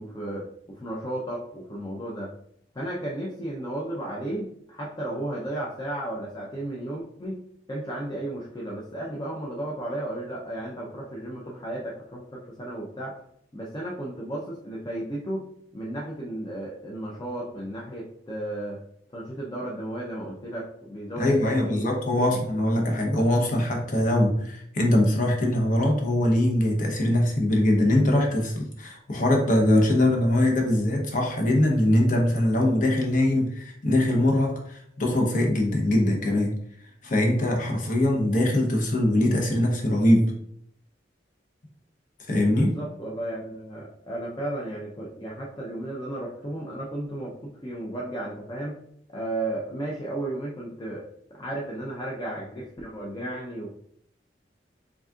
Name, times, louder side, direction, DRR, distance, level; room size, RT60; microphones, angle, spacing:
voice 1, 0.0-2.3 2.7-7.4 7.7-13.2 13.5-15.5 15.7-18.8 19.1-22.4 42.4-48.8 49.1-51.0 51.3-53.7, right 1 dB, 25° left, -3 dB, 0.5 m, -34 dB
voice 2, 21.2-36.6 37.0-40.3 42.3-42.7, left 1 dB, 45° left, 1 dB, 0.9 m, -22 dB
3.9 x 3.6 x 2.3 m, 0.69 s
head